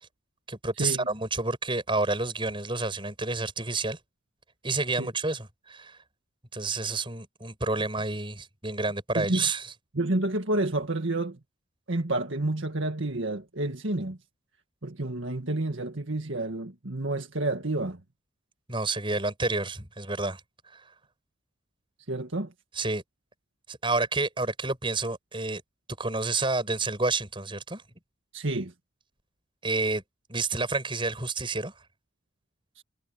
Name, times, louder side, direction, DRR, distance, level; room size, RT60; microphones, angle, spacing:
voice 1, 0.5-4.0 4.6-6.0 6.5-9.7 18.7-20.4 20.7-20.8 22.7-23.0 23.7-25.6 26.0-27.8 29.6-30.0 30.3-31.7, right 3 dB, 25° right, 7.3 m, -29 dB
voice 2, 9.9-11.4 11.9-14.2 14.8-18.0 22.1-22.5 28.3-28.7 32.8-32.9, right 2 dB, 65° right, 1.8 m, -29 dB
head